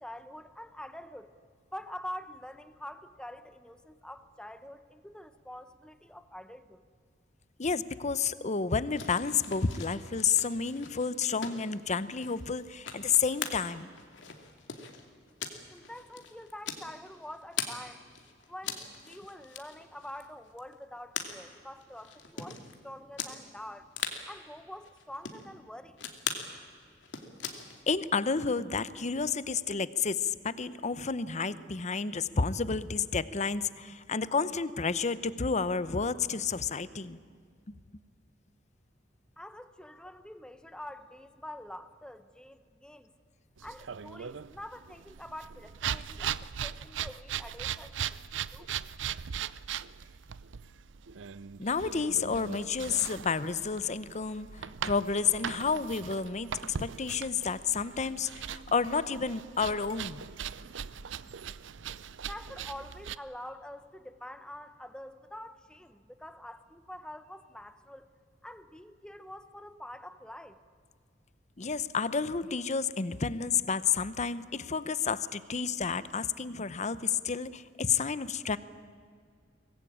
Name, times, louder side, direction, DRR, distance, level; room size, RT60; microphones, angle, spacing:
voice 1, 0.0-1.3 1.7-6.8 15.7-18.1 18.5-23.9 24.3-26.0 39.4-43.1 43.6-48.0 48.3-48.7 62.3-68.1 68.4-70.6, left 1 dB, 5° left, 11 dB, 1.0 m, -46 dB
voice 2, 7.6-13.9 27.9-37.2 51.6-60.2 71.6-78.6, left 5 dB, 40° left, 16 dB, 0.8 m, -30 dB
sound 1, 9.0-17.8 18.1-22.7 23.2-23.3 23.6-23.7 23.9-24.2 24.8-25.5 26.0-26.5 26.9-27.8, left 7 dB, 70° left, 2.6 m, -41 dB
sound 2, 43.6-63.2, right 8 dB, 80° right, 0.6 m, -39 dB
24.0 x 19.5 x 8.8 m, 2.1 s
head